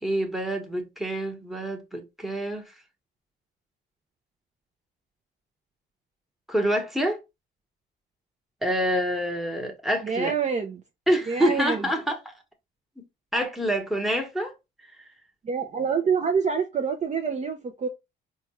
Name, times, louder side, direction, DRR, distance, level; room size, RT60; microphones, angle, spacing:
voice 1, 0.0-2.6 6.5-7.2 8.6-10.3 11.1-12.2 13.0-13.1 13.3-14.5, equal, ahead, 1.1 m, -26 dB
voice 2, 10.0-10.8 11.3-11.9 15.4-17.9, right 6 dB, 35° right, 0.5 m, -26 dB
4.4 x 2.3 x 3.0 m
cardioid pair, 90°, 20 cm